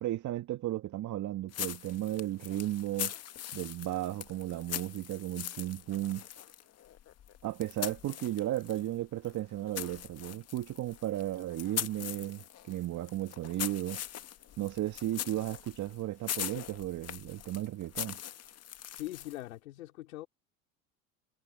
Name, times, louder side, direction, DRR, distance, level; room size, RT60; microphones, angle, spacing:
voice 1, 0.0-3.1 3.5-6.2 7.4-14.0 14.6-18.2, right 14 dB, 45° right, 2.1 m, -35 dB
sound 1, 1.5-8.9 9.2-19.5, left 11 dB, 40° left, 1.7 m, -41 dB
voice 2, 18.9-20.3, left 16 dB, 85° left, 3.7 m, -42 dB
hypercardioid pair, 90°, 40 cm